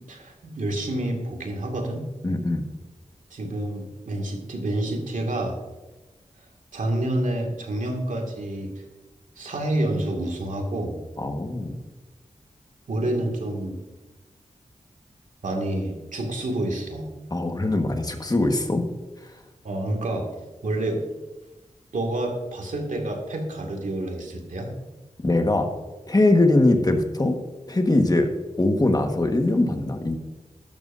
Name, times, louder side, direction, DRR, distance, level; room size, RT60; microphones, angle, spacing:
voice 1, 0.1-2.1 3.3-5.6 6.7-8.7 9.4-11.0 12.9-13.8 15.4-17.1 19.6-20.3 20.6-21.0 21.9-24.7, right 1 dB, 90° right, 1 dB, 2.2 m, -28 dB
voice 2, 2.2-2.6 11.2-11.8 17.3-18.8 25.2-25.7 26.1-27.4 27.7-28.3 28.6-30.1, left 2 dB, 30° left, 5 dB, 1.5 m, -21 dB
13.0 x 12.0 x 2.7 m, 1.2 s
wide cardioid pair, 75°, 13 cm